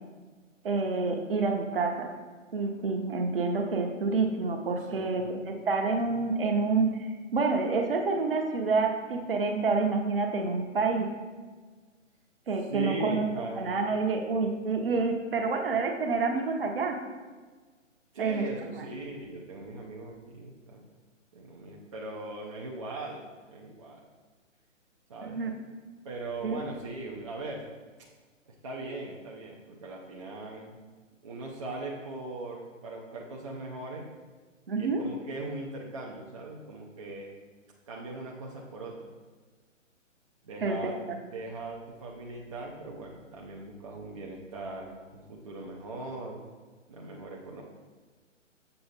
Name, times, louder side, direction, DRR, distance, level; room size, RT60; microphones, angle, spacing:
voice 1, 0.6-2.1 2.5-11.1 12.5-13.3 13.6-17.0 18.2-18.4 25.2-25.5 26.4-26.6 34.7-35.0 40.6-40.8 41.1-41.2, right 4 dB, 45° right, 3 dB, 1.0 m, -28 dB
voice 2, 4.9-5.3 12.7-13.7 18.1-20.8 21.3-24.0 25.1-25.4 26.0-27.6 28.5-30.8 31.2-34.1 34.8-37.3 37.9-39.0 40.4-40.9 41.3-46.5 46.9-47.6, right 2 dB, 25° right, -3 dB, 0.6 m, -39 dB
6.8 x 6.7 x 4.0 m, 1.4 s
figure-of-eight pair, 135°, 38 cm